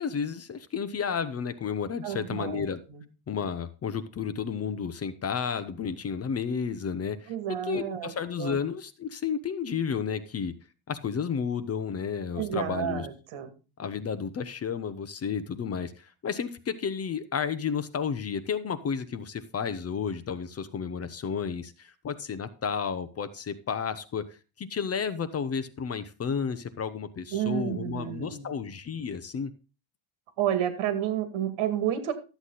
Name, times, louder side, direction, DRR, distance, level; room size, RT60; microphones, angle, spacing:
voice 1, 0.0-2.8 3.3-7.3 7.6-10.5 10.9-13.1 13.8-24.3 24.6-29.5, left 6 dB, 30° left, 12 dB, 0.7 m, -32 dB
voice 2, 2.0-2.6 2.9-3.0 7.3-8.1 8.4-8.6 12.4-13.5 27.3-28.6 30.4-32.1, right 10 dB, 75° right, 9 dB, 2.4 m, -30 dB
13.0 x 8.1 x 4.0 m, 0.33 s
cardioid pair, 165°, 49 cm